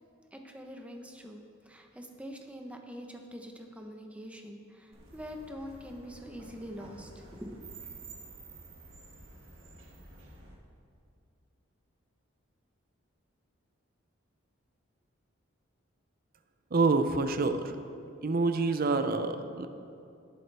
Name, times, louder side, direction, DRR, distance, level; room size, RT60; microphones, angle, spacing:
voice 1, 0.3-7.6, equal, 5° right, 3 dB, 0.9 m, -44 dB
sound 1, 4.9-10.5, right 3 dB, 85° right, 1.9 m, -50 dB
voice 2, 16.7-17.7 18.2-19.7, right 3 dB, 45° right, 9 dB, 0.5 m, -27 dB
18.0 x 8.4 x 3.4 m, 2.5 s
head